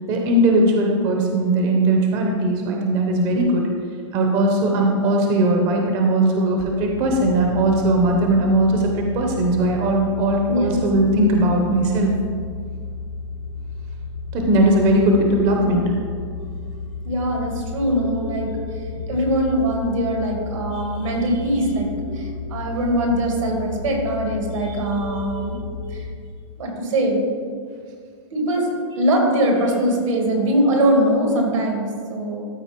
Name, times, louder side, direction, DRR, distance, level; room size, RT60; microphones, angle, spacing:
voice 1, 0.1-3.7 4.1-12.1 14.3-15.9, right 1 dB, 25° right, 1 dB, 0.7 m, -19 dB
sound 1, 6.8-26.1, left 3 dB, 80° left, 1.4 m, -32 dB
voice 2, 10.5-10.8 17.0-18.5 19.1-25.6 25.9-26.1 26.6-27.3 28.3-32.5, right 1 dB, 85° right, 1 dB, 2.4 m, -22 dB
13.0 x 4.4 x 4.5 m, 2.1 s
supercardioid pair, 165°, 16 cm